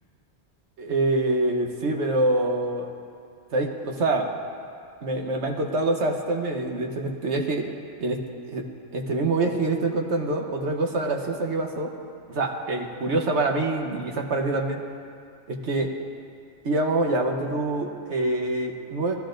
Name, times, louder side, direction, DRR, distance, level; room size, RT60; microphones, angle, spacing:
voice 1, 0.8-2.9 3.5-4.3 5.0-7.7 8.0-11.9 12.3-14.8 15.5-15.9 16.6-19.1, right 2 dB, 90° right, 2 dB, 1.3 m, -25 dB
18.5 x 12.5 x 2.6 m, 2.3 s
omnidirectional pair, 1.1 m